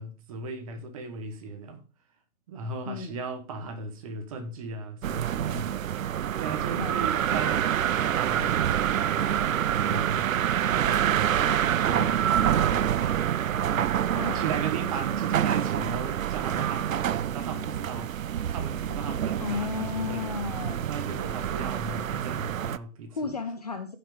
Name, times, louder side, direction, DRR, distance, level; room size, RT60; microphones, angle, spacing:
voice 1, 0.0-1.8 2.5-6.1 6.4-7.7 8.0-8.5 9.0-10.3 10.6-13.0 13.4-13.9 14.3-20.4 20.9-23.3, right 4 dB, 25° right, 1.3 m, -37 dB
voice 2, 2.8-3.2 6.8-7.1 14.1-14.4 19.4-20.8 23.1-24.0, left 5 dB, 30° left, 0.6 m, -33 dB
sound 1, 5.0-22.8, right 10 dB, 70° right, 0.6 m, -27 dB
sound 2, 7.0-12.5, equal, ahead, 0.9 m, -51 dB
14.5 x 5.9 x 3.5 m
hypercardioid pair, 165°, 43 cm